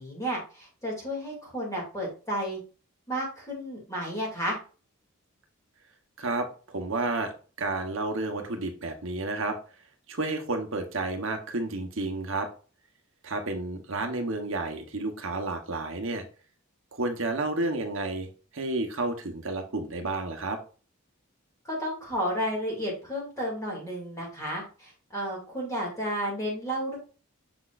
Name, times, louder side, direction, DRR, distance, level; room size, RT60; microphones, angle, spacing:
voice 1, 0.0-2.6 3.1-4.6 21.6-27.0, equal, 15° left, -4 dB, 2.6 m, -32 dB
voice 2, 6.2-7.3 7.6-9.6 10.1-12.5 13.2-16.2 16.9-18.3 18.5-20.6, right 2 dB, 65° right, 4 dB, 1.1 m, -31 dB
7.1 x 6.0 x 2.5 m, 0.36 s
head